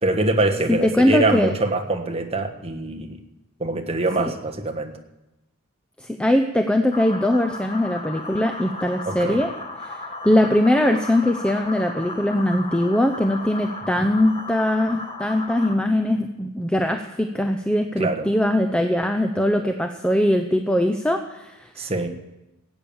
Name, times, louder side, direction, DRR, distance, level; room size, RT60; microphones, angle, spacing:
voice 1, 0.0-3.2 3.6-4.9 9.0-9.4 14.0-14.1 18.0-18.2 21.8-22.1, right 2 dB, 30° right, 3 dB, 1.4 m, -24 dB
voice 2, 0.7-1.5 4.2-4.3 6.0-9.5 9.9-10.0 10.2-22.1, left 1 dB, 5° left, 6 dB, 0.6 m, -21 dB
sound 1, 6.9-15.7, left 2 dB, 25° left, 1.3 m, -35 dB
17.0 x 8.9 x 7.1 m, 0.97 s
head